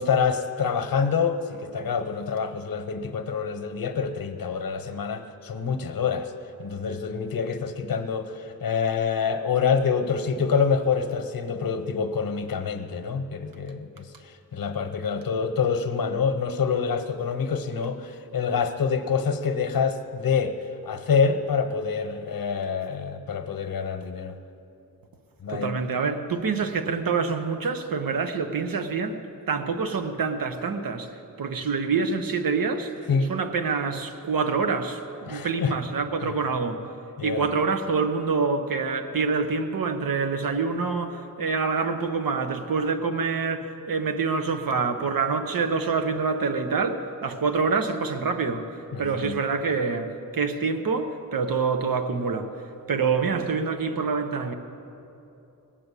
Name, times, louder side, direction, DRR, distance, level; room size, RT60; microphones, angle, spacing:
voice 1, 0.0-6.3 6.6-20.5 20.8-24.3 25.4-25.8 33.1-33.3 35.3-35.7 36.2-36.3 37.2-37.5 48.9-49.4, left 6 dB, 70° left, 7 dB, 0.9 m, -26 dB
voice 2, 25.5-29.2 29.5-31.1 31.4-32.9 33.3-36.8 37.2-48.7 49.0-52.5 52.9-54.5, right 5 dB, 70° right, 7 dB, 1.1 m, -26 dB
19.0 x 7.6 x 8.3 m, 2.8 s
wide cardioid pair, 115°, 35 cm